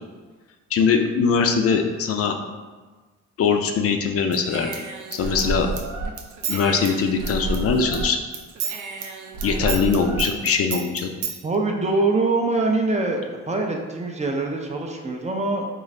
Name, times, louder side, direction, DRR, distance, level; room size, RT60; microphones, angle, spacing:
voice 1, 0.7-2.3 3.4-4.7 5.1-5.7 6.5-8.2 9.4-11.1, left 5 dB, 50° left, 4 dB, 0.4 m, -21 dB
Human voice / Scissors, 4.3-8.1 8.3-11.4, right 4 dB, 80° right, 0.5 m, -30 dB
voice 2, 11.4-15.7, right 3 dB, 25° right, 1 dB, 0.4 m, -24 dB
3.7 x 2.5 x 3.1 m, 1.3 s
cardioid pair, 90°, 30 cm